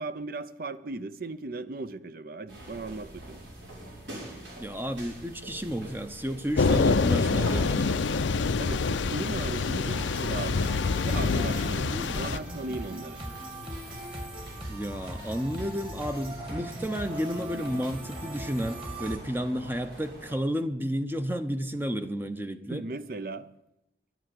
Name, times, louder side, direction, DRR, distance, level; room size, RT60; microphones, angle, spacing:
voice 1, 0.0-3.4 8.6-8.8 9.1-13.2 22.7-23.5, right 3 dB, 50° right, 0.6 m, -37 dB
sound 1, 2.5-20.3, right 1 dB, 80° right, 5.1 m, -46 dB
voice 2, 4.6-8.0 11.9-12.4 14.7-22.8, equal, 10° right, 0.6 m, -32 dB
Thunder / Rain, 6.6-12.4, left 4 dB, 85° left, 0.6 m, -26 dB
sound 2, 9.9-19.2, right 1 dB, 30° right, 2.1 m, -39 dB
11.0 x 9.2 x 7.8 m
head